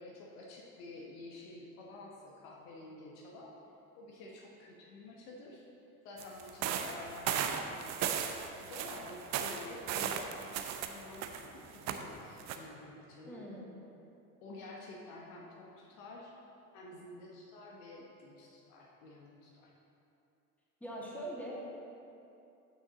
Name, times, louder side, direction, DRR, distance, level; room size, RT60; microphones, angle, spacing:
voice 1, 0.0-3.5 4.0-5.6 6.0-7.9 8.5-13.4 14.4-16.3 16.7-19.7, left 2 dB, 55° left, -2 dB, 1.4 m, -50 dB
sound 1, 6.2-11.5 11.7-12.0 12.4-12.6, right 8 dB, 35° right, 0.7 m, -36 dB
voice 2, 13.3-13.7 20.8-21.5, right 1 dB, 5° left, -5 dB, 2.4 m, -42 dB
14.0 x 6.3 x 4.0 m, 2.8 s
figure-of-eight pair, 70°, 45 cm